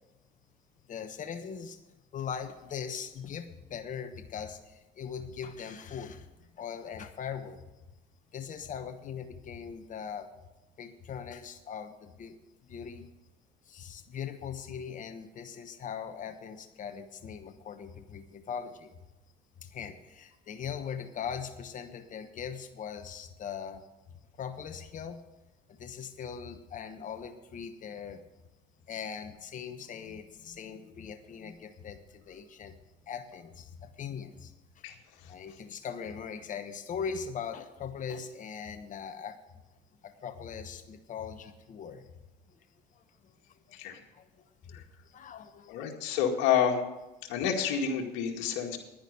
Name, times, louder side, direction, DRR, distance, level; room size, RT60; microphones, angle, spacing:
voice 1, 0.9-1.8 2.1-6.3 6.6-7.6 8.3-10.3 10.8-12.4 12.6-13.1 13.7-18.9 19.6-23.9 24.4-25.2 25.7-28.2 28.9-32.7 33.1-34.8 35.3-39.4 40.0-42.1 44.1-44.3 44.6-45.8, left 7 dB, 40° left, 8 dB, 1.1 m, -40 dB
voice 2, 45.7-46.8 47.3-48.8, left 8 dB, 80° left, 2 dB, 2.1 m, -28 dB
10.5 x 10.0 x 6.8 m, 1.0 s
supercardioid pair, 90°, 19 cm